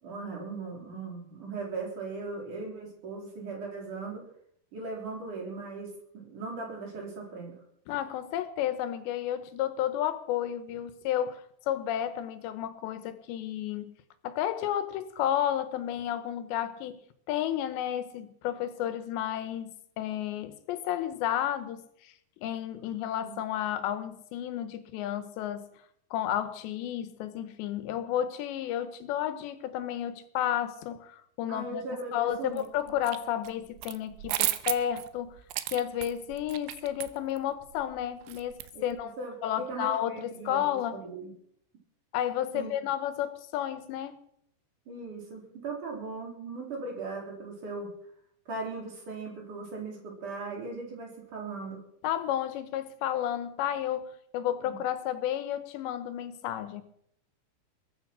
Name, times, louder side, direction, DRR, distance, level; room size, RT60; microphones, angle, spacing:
voice 1, 0.0-4.2 4.7-7.6 23.2-23.4 31.5-32.6 38.7-40.6 40.9-41.3 42.5-42.7 44.9-47.9 48.5-51.8 54.6-54.8, right 3 dB, 45° right, 0 dB, 5.0 m, -38 dB
voice 2, 7.9-13.9 14.2-17.0 17.3-22.1 22.4-25.7 26.1-31.8 32.1-35.3 35.7-39.1 39.4-41.0 42.1-44.2 52.0-56.8, left 11 dB, 80° left, 12 dB, 3.1 m, -32 dB
sound 1, 32.6-33.2 33.4-39.0, right 15 dB, 90° right, 3.1 m, -34 dB
21.5 x 10.5 x 6.1 m, 0.70 s
omnidirectional pair, 5.2 m